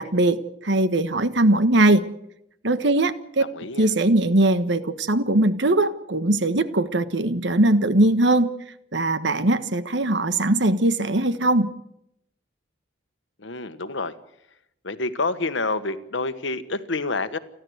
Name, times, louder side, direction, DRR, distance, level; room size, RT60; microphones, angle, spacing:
voice 1, 0.0-2.0 2.6-3.4 3.8-8.5 8.9-11.7, right 2 dB, 65° right, 13 dB, 1.4 m, -20 dB
voice 2, 3.4-3.9 13.4-14.1 14.8-17.4, left 3 dB, 70° left, 12 dB, 1.4 m, -28 dB
29.5 x 12.0 x 8.0 m, 0.79 s
head